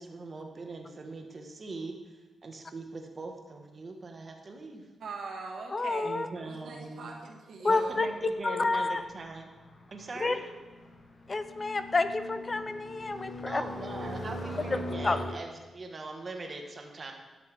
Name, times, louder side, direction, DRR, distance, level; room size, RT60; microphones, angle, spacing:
voice 1, 0.0-4.9 6.0-7.1 7.6-9.5 9.9-10.5 13.5-17.1, right 3 dB, 40° right, 3 dB, 1.3 m, -41 dB
voice 2, 5.0-6.1 6.4-8.0, right 4 dB, 80° right, 0 dB, 1.5 m, -42 dB
voice 3, 5.7-6.3 7.6-8.1 8.4-9.0 10.2-10.3 11.3-13.6 14.7-14.8 15.0-15.4, left 3 dB, 35° left, 11 dB, 0.5 m, -29 dB
sound 1, 7.8-15.3, left 1 dB, 55° left, 1.5 m, -41 dB
12.0 x 6.8 x 3.4 m, 1.2 s
cardioid pair, 80°, 0 cm